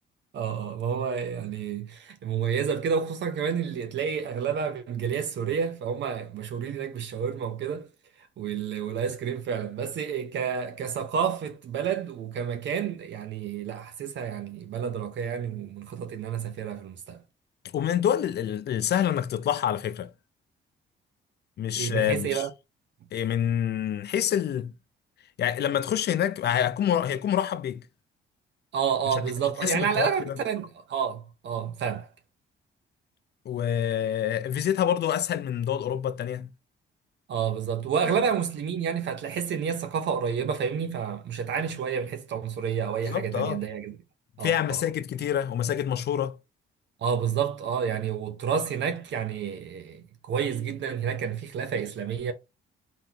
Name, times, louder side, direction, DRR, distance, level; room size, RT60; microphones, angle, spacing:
voice 1, 0.3-7.9 8.4-17.2 21.8-22.5 28.7-32.1 37.3-44.0 44.4-44.8 47.0-52.3, right 7 dB, 65° right, 0.9 m, -29 dB
voice 2, 17.7-20.1 21.6-22.5 23.1-24.7 25.4-27.8 29.1-29.2 29.6-30.4 33.5-36.5 43.0-43.6 44.4-46.4, left 10 dB, 55° left, 0.6 m, -27 dB
4.0 x 3.9 x 2.9 m
cardioid pair, 90°, 20 cm